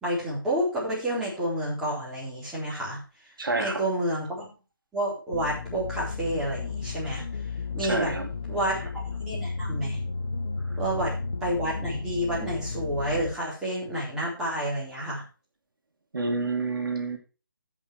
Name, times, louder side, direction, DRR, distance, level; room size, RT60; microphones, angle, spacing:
voice 1, 0.0-3.0 3.6-4.5 4.9-7.2 7.7-8.1 8.5-10.0 10.8-11.1 11.4-15.2, right 1 dB, 5° right, -7 dB, 3.9 m, -29 dB
voice 2, 3.4-3.8 7.8-8.3 16.1-17.2, right 3 dB, 75° right, 4 dB, 2.5 m, -28 dB
sound 1, 5.3-13.3, left 4 dB, 80° left, 1.3 m, -33 dB
14.5 x 5.7 x 4.6 m, 0.33 s
hypercardioid pair, 165°, 11 cm